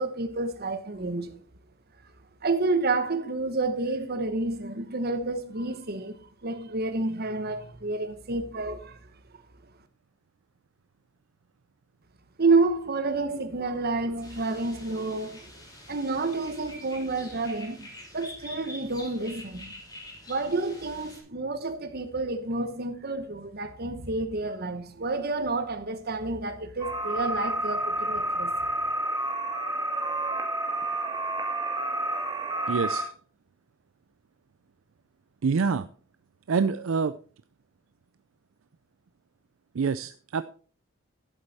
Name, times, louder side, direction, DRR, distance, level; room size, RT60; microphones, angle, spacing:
voice 1, 0.0-1.4 2.4-6.2 6.4-9.0 12.4-15.5 15.9-17.9 18.1-19.7 20.3-28.5, right 3 dB, 45° right, 1.2 m, -29 dB
sound 1, 14.2-21.2, left 1 dB, 20° left, 3.4 m, -46 dB
sound 2, 26.8-33.0, right 1 dB, 20° right, 2.0 m, -29 dB
voice 2, 32.7-33.1 35.4-35.9 36.5-37.1 39.7-40.4, right 5 dB, 65° right, 0.4 m, -26 dB
11.5 x 7.9 x 4.2 m
head